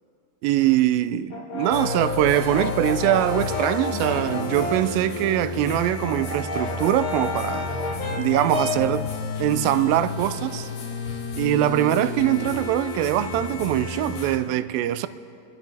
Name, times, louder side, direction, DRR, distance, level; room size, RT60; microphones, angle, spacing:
voice 1, 0.4-7.7 8.1-9.1 9.4-10.7 11.4-15.1, right 13 dB, 85° right, 2.3 m, -23 dB
Brass instrument, 1.3-5.0 5.3-9.0, left 2 dB, 50° left, 1.6 m, -31 dB
sound 1, 1.7-14.4, left 4 dB, 65° left, 2.6 m, -32 dB
sound 2, 3.9-6.5, left 2 dB, 85° left, 3.2 m, -39 dB
29.0 x 11.5 x 3.3 m
omnidirectional pair, 4.1 m